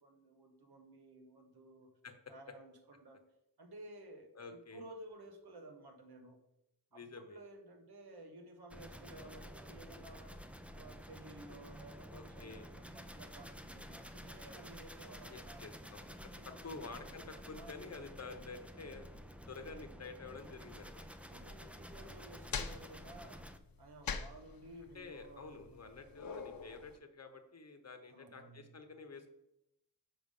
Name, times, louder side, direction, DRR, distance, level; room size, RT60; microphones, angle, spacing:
voice 1, 0.0-1.9 2.3-3.2 3.6-6.4 6.9-10.4 10.7-15.6 16.4-16.9 17.5-17.8 21.3-25.8 28.1-28.7, right 1 dB, 75° right, 5 dB, 1.3 m, -55 dB
voice 2, 4.3-4.8 6.9-7.4 12.1-12.7 15.3-16.2 16.6-19.1 19.5-21.1 24.1-24.2 24.9-29.3, left 4 dB, 40° left, 6 dB, 1.0 m, -50 dB
sound 1, 8.7-23.6, equal, 5° right, 0.4 m, -51 dB
sound 2, 21.9-27.0, left 5 dB, 60° left, 0.7 m, -44 dB
6.8 x 5.8 x 5.3 m, 0.83 s
wide cardioid pair, 130°, 39 cm